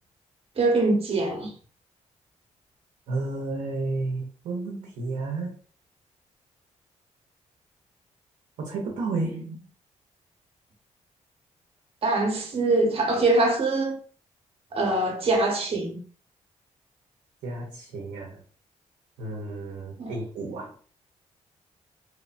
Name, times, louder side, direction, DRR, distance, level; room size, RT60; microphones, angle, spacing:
voice 1, 0.6-1.5 12.0-14.0 14.7-16.0 20.0-20.2, right 2 dB, 50° right, 0.9 m, -23 dB
voice 2, 3.1-5.6 8.6-9.6 17.4-18.4 19.2-20.8, right 3 dB, 90° right, 0.6 m, -32 dB
3.0 x 2.0 x 2.5 m
cardioid pair, 80°, 13 cm